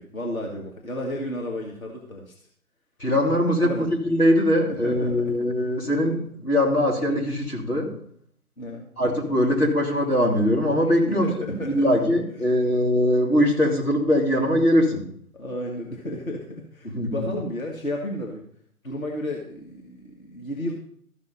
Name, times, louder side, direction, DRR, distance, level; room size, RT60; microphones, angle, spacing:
voice 1, 0.0-2.4 3.6-3.9 4.7-5.4 8.6-8.9 11.0-11.9 15.3-18.4 18.8-20.7, left 1 dB, 65° left, 0 dB, 1.9 m, -32 dB
voice 2, 3.0-7.9 9.0-15.1 16.8-17.3, equal, 85° left, 0 dB, 3.2 m, -22 dB
13.5 x 6.0 x 5.2 m, 0.63 s
figure-of-eight pair, 145°, 44 cm